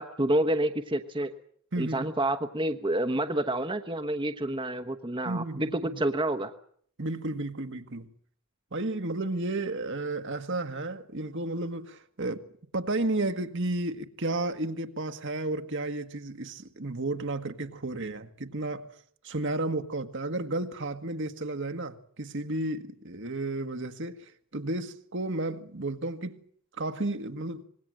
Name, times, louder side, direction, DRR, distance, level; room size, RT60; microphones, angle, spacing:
voice 1, 0.0-1.3 1.8-6.5, right 1 dB, 20° right, 1.1 m, -28 dB
voice 2, 1.7-2.1 5.3-6.0 7.0-8.1 8.7-12.5 12.7-18.9 19.2-26.4 26.8-27.6, right 2 dB, 55° right, 1.6 m, -32 dB
25.5 x 21.0 x 7.8 m
head